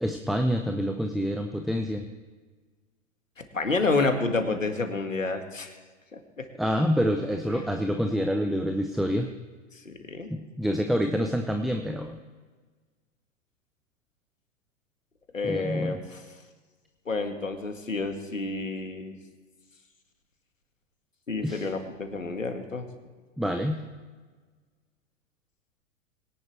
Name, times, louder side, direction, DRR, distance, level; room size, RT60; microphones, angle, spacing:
voice 1, 0.0-2.0 6.6-9.3 10.3-12.2 15.4-16.0 21.4-21.7 23.4-23.8, equal, ahead, 5 dB, 0.5 m, -27 dB
voice 2, 3.4-5.8 6.1-6.5 7.5-7.6 9.9-10.3 15.3-16.2 17.1-19.2 21.3-22.9, left 3 dB, 90° left, 6 dB, 1.9 m, -29 dB
22.5 x 10.5 x 3.3 m, 1.4 s
figure-of-eight pair, 105°, 38 cm